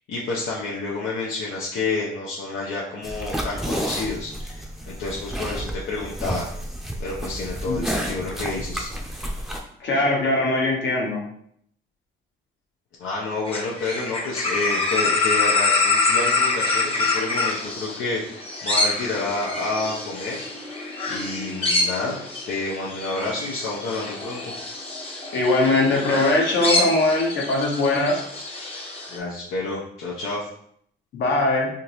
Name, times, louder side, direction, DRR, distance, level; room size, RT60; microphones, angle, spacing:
voice 1, 0.1-6.5 7.0-8.9 13.0-20.5 21.1-22.2 22.5-24.5 29.1-30.5, left 3 dB, 85° left, -6 dB, 0.8 m, -29 dB
sound 1, 3.0-9.6, equal, ahead, 0.6 m, -31 dB
voice 2, 9.8-11.2 25.3-28.2 31.1-31.7, left 2 dB, 65° left, -1 dB, 1.2 m, -21 dB
sound 2, 13.5-29.2, left 3 dB, 30° left, 1.0 m, -26 dB
3.6 x 2.7 x 3.0 m, 0.69 s
cardioid pair, 90°, 20 cm